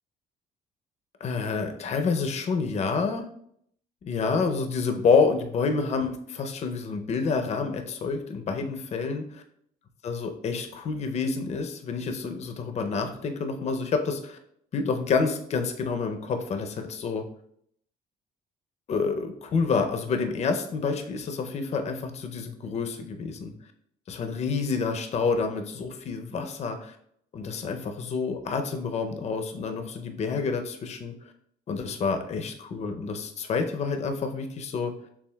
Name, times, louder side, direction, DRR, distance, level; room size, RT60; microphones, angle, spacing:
voice 1, 1.2-3.3 4.0-9.4 10.0-14.4 14.7-17.2 18.9-23.5 24.1-27.0 27.3-31.1 31.7-34.9, left 4 dB, 40° left, 6 dB, 0.6 m, -28 dB
6.9 x 2.4 x 2.3 m, 0.67 s
cardioid pair, 110°, 17 cm